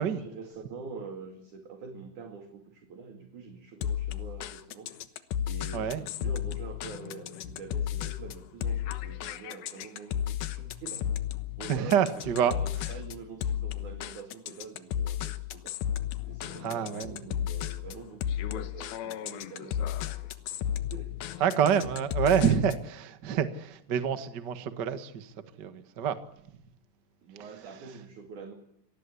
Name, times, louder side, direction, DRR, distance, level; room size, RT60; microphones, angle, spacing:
voice 1, 0.0-4.9 5.5-11.1 11.6-15.8 16.3-21.2 27.2-28.6, right 5 dB, 50° right, 3.5 m, -45 dB
sound 1, 3.8-22.9, left 10 dB, 70° left, 2.9 m, -34 dB
voice 2, 11.7-12.6 16.6-17.5 21.4-26.2, right 8 dB, 90° right, 0.9 m, -27 dB
26.5 x 19.5 x 8.4 m
omnidirectional pair, 4.8 m